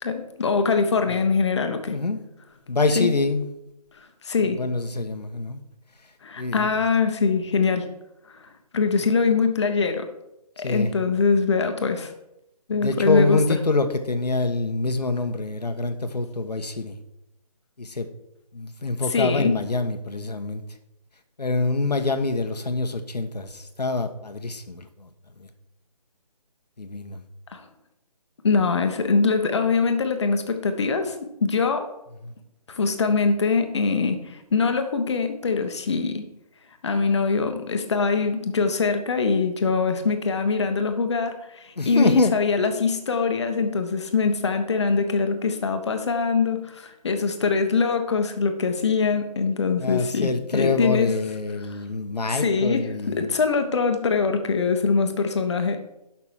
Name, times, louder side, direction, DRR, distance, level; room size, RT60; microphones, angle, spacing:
voice 1, 0.0-2.0 2.9-3.1 4.2-4.6 6.2-7.9 8.3-8.5 8.7-10.1 10.6-12.1 12.7-13.6 19.1-19.6 27.5-27.6 28.4-31.9 32.7-36.2 36.8-51.1 51.6-51.8 52.3-55.8, left 4 dB, 45° left, 7 dB, 1.3 m, -23 dB
voice 2, 1.9-2.2 2.7-3.5 4.4-5.6 6.4-6.7 10.6-10.9 12.8-16.9 17.8-18.1 18.5-20.6 21.4-25.1 25.4-25.5 26.8-27.2 32.2-32.3 41.8-42.3 49.8-53.2, left 3 dB, 80° left, 8 dB, 1.3 m, -25 dB
11.5 x 6.0 x 4.8 m, 0.88 s
figure-of-eight pair, 160°, 21 cm